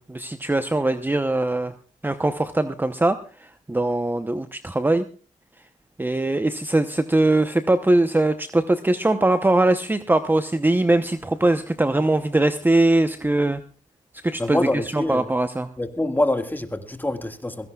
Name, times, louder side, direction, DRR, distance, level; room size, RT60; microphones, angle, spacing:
voice 1, 0.0-1.7 2.0-5.1 6.0-13.6 14.2-14.6 14.9-15.7, right 2 dB, 15° right, 0.8 m, -21 dB
voice 2, 14.4-15.3 15.8-17.7, left 1 dB, 15° left, 1.9 m, -25 dB
22.5 x 17.0 x 2.4 m
cardioid pair, 65°, 14 cm